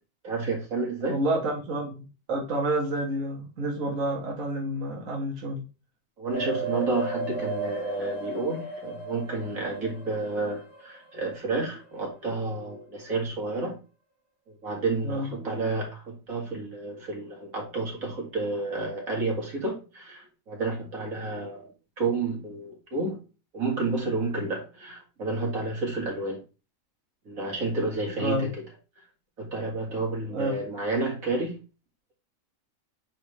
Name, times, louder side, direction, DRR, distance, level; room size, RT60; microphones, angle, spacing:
voice 1, 0.2-1.2 6.2-13.8 14.5-21.7 22.0-23.2 23.5-26.4 27.3-28.6 29.4-31.6, right 3 dB, 90° right, 2.5 m, -30 dB
voice 2, 1.1-5.6 15.0-15.3 28.2-28.5 30.3-30.5, right 1 dB, 65° right, 1.6 m, -29 dB
sound 1, 6.3-11.0 11.3-11.4, right 2 dB, 20° left, 1.1 m, -34 dB
8.2 x 3.5 x 3.2 m
omnidirectional pair, 1.4 m